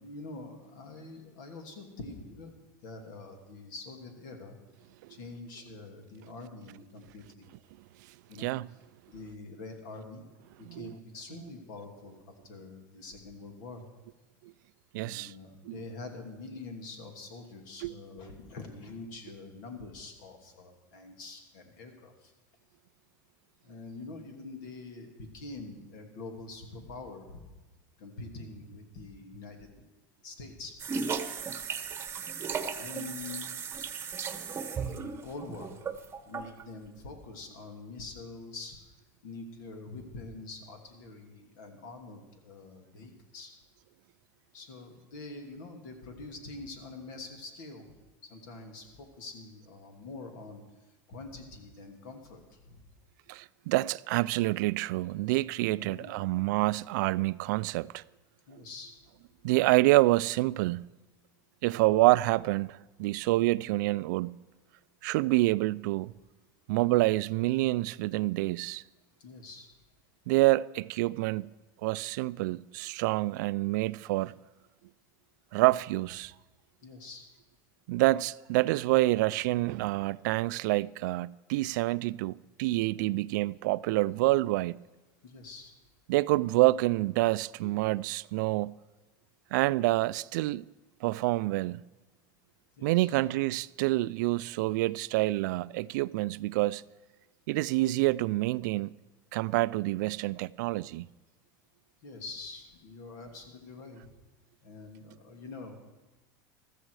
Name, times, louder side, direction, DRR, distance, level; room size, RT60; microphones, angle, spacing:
voice 1, 0.0-2.5 2.8-4.6 5.1-7.5 8.3-8.5 9.1-10.2 10.6-12.2 12.4-13.8 15.0-22.3 23.6-27.4 28.0-29.7 30.2-30.8 32.7-33.5 34.8-35.9 36.3-38.8 39.2-43.5 44.5-47.9 48.3-50.6 51.1-52.8 55.6-56.2 58.5-58.9 63.3-63.6 69.2-69.7 76.8-77.3 82.9-83.3 85.2-85.7 92.8-93.1 102.0-104.0 104.6-105.7, left 3 dB, 75° left, 2.7 m, -45 dB
voice 2, 14.9-15.3 15.7-15.8 17.8-17.9 53.3-58.0 59.4-60.8 61.6-64.4 65.0-66.1 66.7-68.8 70.3-71.5 71.8-74.3 75.5-76.3 77.9-84.8 86.1-88.8 89.5-90.7 91.0-91.8 92.8-96.8 97.5-98.9 99.3-101.1, right 19 dB, 75° right, 0.4 m, -27 dB
sound 1, 30.8-36.6, right 6 dB, 25° right, 1.0 m, -36 dB
15.0 x 13.5 x 4.8 m
supercardioid pair, 120°, 10 cm